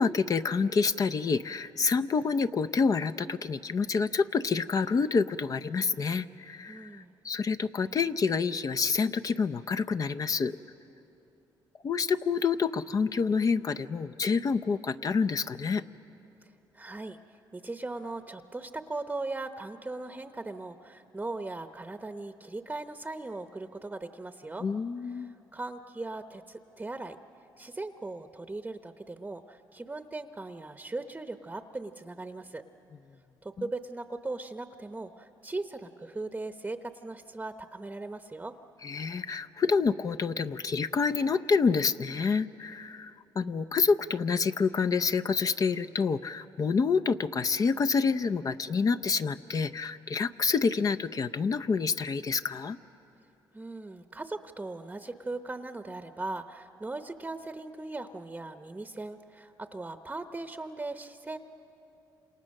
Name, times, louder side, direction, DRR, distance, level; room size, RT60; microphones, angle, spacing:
voice 1, 0.0-10.6 11.8-15.8 24.6-25.3 38.8-52.8, left 5 dB, 45° left, 10 dB, 0.6 m, -28 dB
voice 2, 6.7-7.1 16.4-24.7 25.1-27.2 27.6-32.6 33.4-38.5 53.5-61.4, right 2 dB, 15° right, 8 dB, 0.8 m, -39 dB
28.0 x 27.5 x 6.5 m, 3.0 s
cardioid pair, 80°, 9 cm